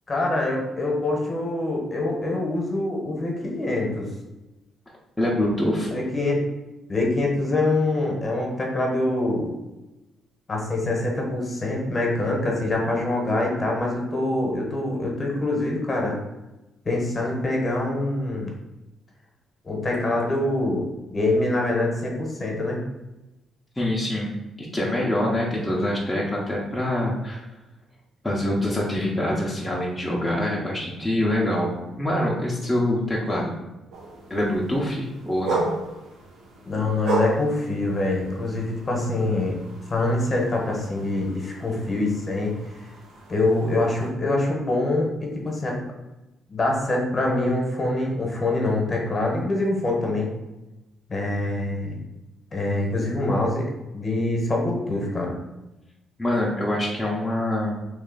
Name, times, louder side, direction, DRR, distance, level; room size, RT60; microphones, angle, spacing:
voice 1, 0.1-4.1 5.8-6.4 6.9-9.5 10.5-16.2 16.8-18.5 19.6-20.9 21.1-22.8 36.7-39.6 39.9-42.5 43.3-45.8 46.5-50.3 51.1-52.0 52.5-53.7 53.9-55.3, left 2 dB, 35° left, 0 dB, 1.1 m, -25 dB
voice 2, 5.2-5.9 23.8-27.4 28.2-33.5 34.3-35.7 56.2-57.8, left 1 dB, 5° left, -5 dB, 0.8 m, -25 dB
sound 1, 33.9-44.1, right 3 dB, 75° right, 0.8 m, -34 dB
3.2 x 2.7 x 3.9 m, 1.0 s
cardioid pair, 90°, 0 cm